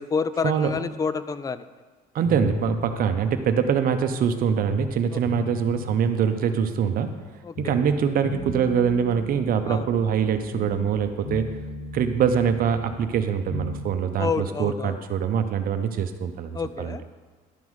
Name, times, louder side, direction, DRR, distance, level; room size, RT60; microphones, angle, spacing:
voice 1, 0.0-1.6 5.1-5.2 7.4-7.7 9.7-9.8 14.2-15.0 16.5-17.0, left 5 dB, 20° left, 14 dB, 0.3 m, -28 dB
voice 2, 2.1-7.1 7.6-11.5 11.9-17.0, right 7 dB, 60° right, 8 dB, 0.7 m, -24 dB
sound 1, 2.2-4.9 5.2-7.3 7.6-11.0 11.2-13.9, left 3 dB, 80° left, 1.2 m, -37 dB
11.5 x 3.9 x 4.7 m, 1.4 s
cardioid pair, 110°, 17 cm